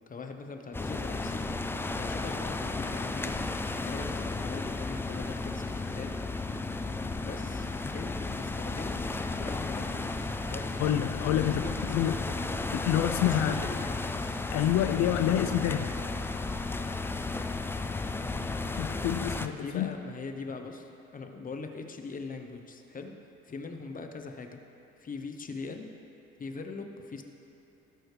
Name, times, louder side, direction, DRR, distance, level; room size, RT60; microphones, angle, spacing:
voice 1, 0.1-1.5 2.0-6.2 7.2-7.7 7.9-10.2 10.5-10.7 11.4-12.4 13.3-14.4 19.6-23.2 23.4-24.6 25.0-25.9 26.4-27.2, left 4 dB, 25° left, 5 dB, 0.8 m, -41 dB
sound 1, 0.7-19.5, left 3 dB, 10° left, 0.3 m, -34 dB
voice 2, 10.8-12.2 12.7-13.6 14.5-15.9 18.8-19.9, left 11 dB, 60° left, 9 dB, 0.6 m, -28 dB
17.5 x 6.2 x 3.3 m, 2.8 s
cardioid pair, 110°, 30 cm